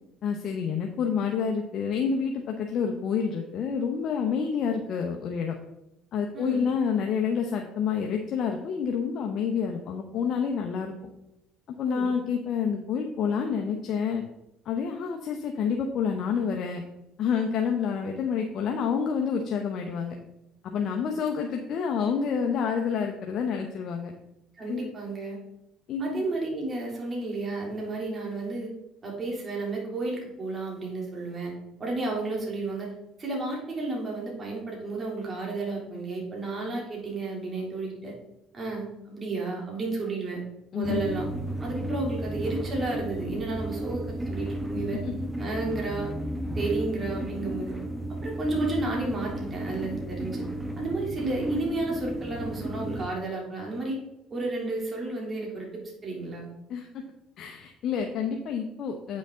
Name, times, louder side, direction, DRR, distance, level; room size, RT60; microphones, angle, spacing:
voice 1, 0.2-5.5 6.1-10.9 11.8-14.2 14.6-16.8 17.2-20.2 20.6-24.1 24.7-24.8 25.9-26.2 40.7-41.0 44.7-45.1 56.7-57.0 57.4-59.2, left 6 dB, 60° left, 2 dB, 0.9 m, -28 dB
voice 2, 6.3-6.7 11.8-12.1 24.6-25.4 26.0-28.7 29.0-32.9 33.2-38.2 38.5-40.4 40.7-41.3 41.6-45.0 45.4-46.1 46.5-47.8 48.2-50.5 50.8-54.0 54.3-56.5, right 2 dB, 35° right, -2 dB, 3.1 m, -32 dB
sound 1, 40.8-53.1, right 1 dB, 10° right, 1.1 m, -33 dB
8.6 x 6.3 x 3.8 m, 0.86 s
supercardioid pair, 80°, 0 cm